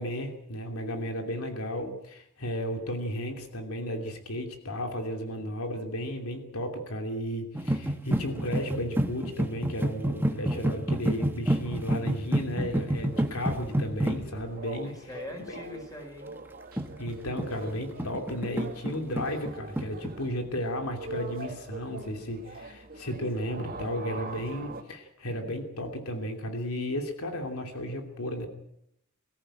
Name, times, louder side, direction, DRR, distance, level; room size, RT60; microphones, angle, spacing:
voice 1, 0.0-14.9 15.5-15.6 17.0-28.5, equal, 90° left, 4 dB, 2.8 m, -34 dB
sound 1, 7.5-14.5 16.8-20.2, right 1 dB, 10° right, 1.2 m, -29 dB
sound 2, 12.9-24.8, right 3 dB, 45° right, 2.0 m, -44 dB
voice 2, 14.8-16.3, left 2 dB, 15° left, 4 dB, 5.0 m, -42 dB
23.0 x 14.5 x 8.8 m, 0.78 s
head